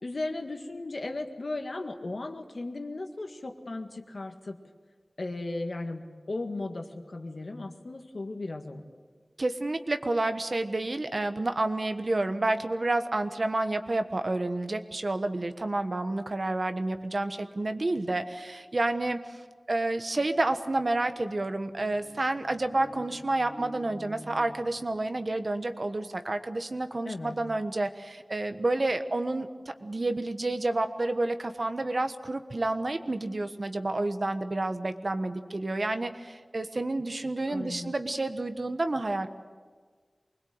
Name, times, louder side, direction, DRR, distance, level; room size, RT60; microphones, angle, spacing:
voice 1, 0.0-4.6 5.2-8.8 27.0-27.4 37.5-37.9, left 2 dB, 70° left, 5 dB, 1.9 m, -36 dB
voice 2, 9.4-19.4 19.7-39.3, right 2 dB, 55° right, 8 dB, 1.3 m, -29 dB
sound 1, 20.3-25.4, equal, 5° right, 2.6 m, -50 dB
24.5 x 21.0 x 8.0 m, 1.5 s
wide cardioid pair, 60°, 0 cm